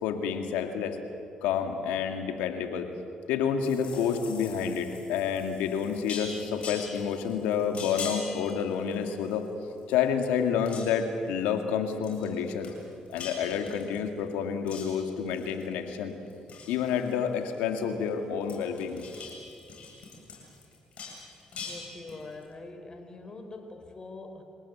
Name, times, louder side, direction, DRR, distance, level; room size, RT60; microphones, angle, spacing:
voice 1, 0.0-1.0 1.4-2.9 3.3-9.5 9.9-12.7 13.1-16.1 16.7-19.0, left 7 dB, 90° left, 6 dB, 2.2 m, -29 dB
sound 1, 3.6-9.5 9.8-10.3 10.6-11.1 12.0-12.3 12.6-14.2 14.7-15.7 16.1-18.1 18.4-22.4, left 5 dB, 60° left, 7.8 m, -43 dB
voice 2, 21.5-24.4, left 3 dB, 35° left, 6 dB, 4.7 m, -44 dB
28.5 x 18.0 x 8.6 m, 2.7 s
supercardioid pair, 65°, 2 cm